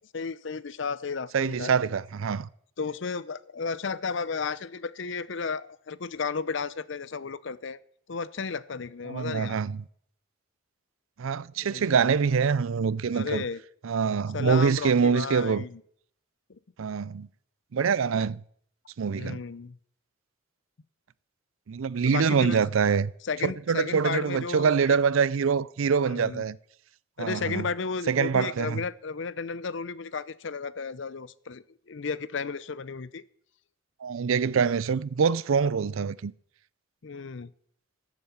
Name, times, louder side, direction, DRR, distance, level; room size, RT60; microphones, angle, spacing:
voice 1, 0.1-1.7 2.8-7.8 8.1-9.6 11.6-11.9 13.1-13.6 14.3-15.8 16.5-16.6 19.1-19.8 22.1-22.6 23.2-25.0 26.1-26.4 27.2-33.2 37.0-37.5, left 5 dB, 60° left, 0.6 m, -33 dB
voice 2, 1.3-2.5 9.1-9.8 11.2-13.4 13.8-15.6 16.8-17.3 17.7-18.4 19.0-19.4 21.7-23.1 23.4-26.6 27.2-27.7 28.1-28.8 34.0-36.3, right 6 dB, 80° right, 0.5 m, -25 dB
13.5 x 8.0 x 7.2 m
head